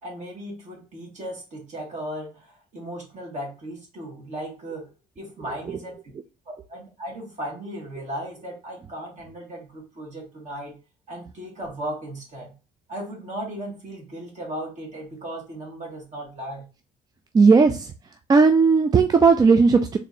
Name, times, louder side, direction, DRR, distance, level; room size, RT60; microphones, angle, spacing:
voice 1, 0.0-2.4 2.7-4.9 5.2-6.0 6.7-10.7 11.1-12.5 12.9-16.6, right 1 dB, 45° right, -1 dB, 2.1 m, -36 dB
voice 2, 17.3-17.9 18.3-20.0, right 4 dB, 25° right, 6 dB, 0.3 m, -16 dB
4.2 x 3.1 x 2.7 m, 0.33 s
cardioid pair, 110°, 17 cm